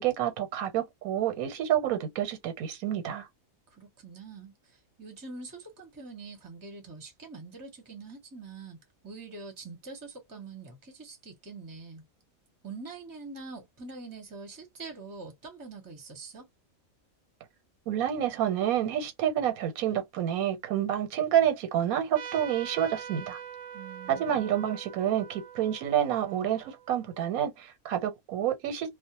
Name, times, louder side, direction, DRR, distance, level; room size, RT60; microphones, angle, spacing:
voice 1, 0.0-3.3 17.9-23.4 24.1-28.9, right 10 dB, 85° right, 1.1 m, -28 dB
voice 2, 3.7-8.8 9.0-12.0 12.6-16.5 23.7-24.4, right 4 dB, 20° right, 0.7 m, -44 dB
Trumpet, 22.1-27.2, right 7 dB, 70° right, 0.8 m, -44 dB
2.4 x 2.0 x 2.8 m
omnidirectional pair, 1.5 m